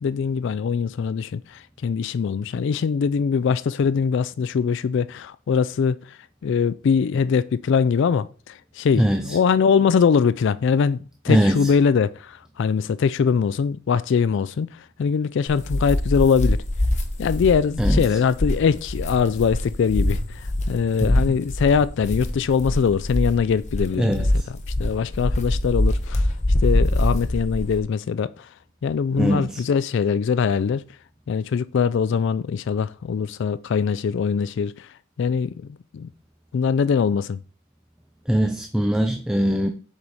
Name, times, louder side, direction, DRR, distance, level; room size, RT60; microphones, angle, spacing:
voice 1, 0.0-11.0 11.2-16.6 17.2-26.3 26.6-28.5 28.8-30.8 31.3-34.9 35.2-36.1 36.5-37.4, left 6 dB, 60° left, 0.3 m, -22 dB
voice 2, 8.9-9.4 11.3-11.7 17.8-18.0 21.0-21.3 24.0-24.3 29.2-29.6 38.3-39.7, equal, 5° right, 0.4 m, -21 dB
sound 1, 15.5-27.8, left 1 dB, 35° left, 1.0 m, -24 dB
7.3 x 4.9 x 4.0 m
head